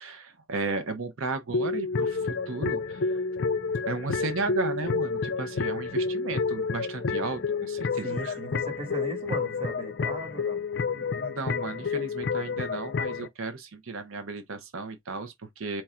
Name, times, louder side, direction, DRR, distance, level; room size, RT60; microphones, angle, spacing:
voice 1, 0.0-3.2 3.9-8.4 10.9-15.8, right 3 dB, 70° right, 0.6 m, -34 dB
sound 1, 1.5-13.3, left 4 dB, 50° left, 0.4 m, -29 dB
voice 2, 8.0-10.6, right 2 dB, 25° right, 1.3 m, -37 dB
4.5 x 2.4 x 4.2 m
head